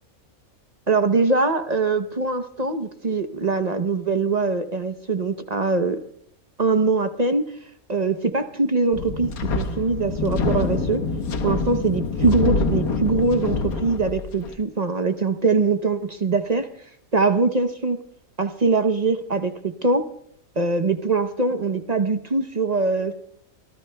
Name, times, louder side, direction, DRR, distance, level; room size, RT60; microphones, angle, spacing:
voice 1, 0.9-6.0 6.6-7.4 7.9-11.0 11.4-16.7 17.1-18.0 18.4-20.0 20.6-23.1, right 3 dB, 35° right, 8 dB, 0.7 m, -22 dB
Wind, 8.9-14.5, left 4 dB, 85° left, 1.5 m, -25 dB
26.0 x 17.0 x 2.2 m, 0.68 s
omnidirectional pair, 1.5 m